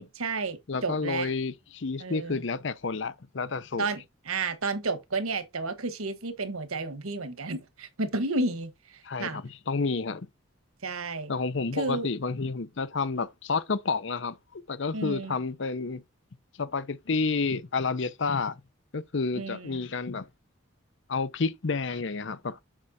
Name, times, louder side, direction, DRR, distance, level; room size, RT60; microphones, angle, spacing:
voice 1, 0.0-1.3 2.0-2.4 3.8-9.4 10.8-11.3 11.7-12.1 14.9-15.4 19.3-19.8, right 3 dB, 90° right, 1.3 m, -32 dB
voice 2, 0.7-3.9 9.0-10.3 11.3-16.0 16.6-18.6 18.9-20.2 21.1-22.6, left 4 dB, 60° left, 0.6 m, -30 dB
7.4 x 6.3 x 2.7 m
head